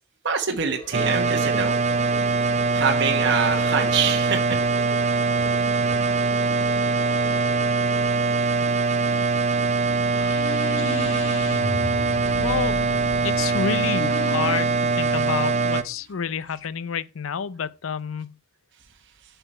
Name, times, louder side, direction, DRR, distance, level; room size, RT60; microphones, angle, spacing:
voice 1, 0.2-2.2 2.7-4.6, right 6 dB, 60° right, 1.1 m, -25 dB
sound 1, 0.7-9.0, equal, 30° left, 2.5 m, -44 dB
sound 2, 0.9-15.8, right 4 dB, 35° right, 0.7 m, -22 dB
sound 3, 9.9-16.7, left 1 dB, 65° left, 1.1 m, -35 dB
voice 2, 12.4-12.8 13.2-18.4, left 6 dB, 85° left, 0.5 m, -29 dB
7.8 x 6.9 x 4.4 m
head